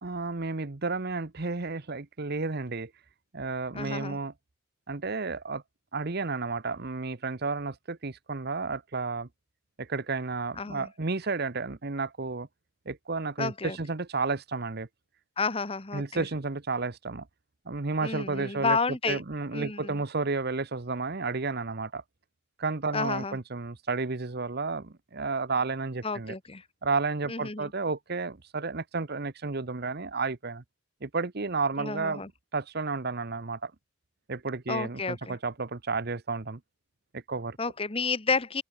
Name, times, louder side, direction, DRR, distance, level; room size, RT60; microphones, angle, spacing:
voice 1, 0.0-2.9 3.3-4.3 4.9-5.6 5.9-9.3 9.8-12.5 12.9-14.9 15.9-17.3 17.7-22.0 22.6-26.3 26.8-30.6 31.0-32.2 32.5-33.7 34.3-36.6 37.1-37.6, right 3 dB, 50° right, 1.0 m, -32 dB
voice 2, 3.7-4.2 10.6-10.9 13.4-13.8 15.4-16.3 18.0-19.2 19.5-20.0 22.9-23.4 26.0-26.6 27.3-27.7 31.8-32.3 34.7-35.4 37.6-38.6, left 4 dB, 25° left, 1.2 m, -31 dB
open air
head